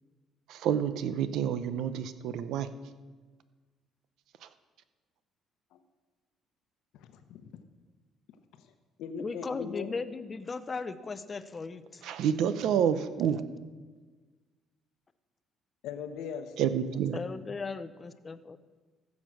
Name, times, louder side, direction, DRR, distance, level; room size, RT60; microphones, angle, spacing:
voice 1, 0.5-2.7 4.4-4.5 12.0-13.4 16.6-17.2, right 8 dB, 70° right, 12 dB, 0.7 m, -29 dB
voice 2, 6.9-7.5 8.5-8.7 9.0-9.9 15.8-16.5, left 6 dB, 80° left, 8 dB, 1.0 m, -40 dB
voice 3, 9.2-12.1 17.1-18.6, left 4 dB, 25° left, 13 dB, 0.6 m, -37 dB
15.0 x 7.3 x 6.3 m, 1.4 s
cardioid pair, 135°, 0 cm